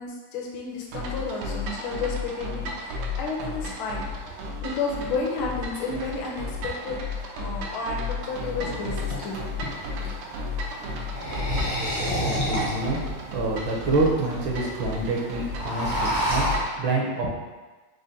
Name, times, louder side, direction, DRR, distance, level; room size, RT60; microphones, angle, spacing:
voice 1, 0.0-7.0 7.3-9.4, left 4 dB, 75° left, -2 dB, 1.3 m, -32 dB
sound 1, 0.7-16.7, equal, 55° right, 0.6 m, -42 dB
sound 2, 0.9-16.8, left 2 dB, 90° right, 1.6 m, -33 dB
sound 3, 8.3-8.4 8.9-10.1 11.0-13.0 13.6-13.7 13.9-14.0 14.2-14.6 14.9-15.1 15.4-16.6, equal, 50° left, 0.5 m, -28 dB
voice 2, 11.7-13.0 13.3-16.5 16.8-17.3, right 2 dB, 75° right, -2 dB, 1.3 m, -27 dB
5.0 x 2.1 x 3.9 m, 1.3 s
omnidirectional pair, 2.4 m